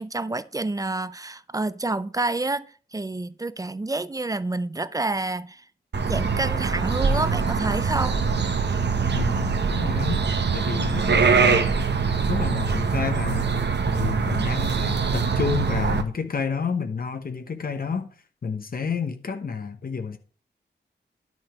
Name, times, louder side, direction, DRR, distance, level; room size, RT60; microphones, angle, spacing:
voice 1, 0.0-5.6 6.1-8.2, right 2 dB, 20° right, 0.5 m, -28 dB
sound 1, 5.9-16.0, right 5 dB, 70° right, 1.2 m, -23 dB
voice 2, 9.1-10.3 10.5-11.8 12.3-13.5 13.9-18.1 18.4-20.2, left 5 dB, 55° left, 1.0 m, -29 dB
11.0 x 6.1 x 5.0 m
wide cardioid pair, 145°, 18 cm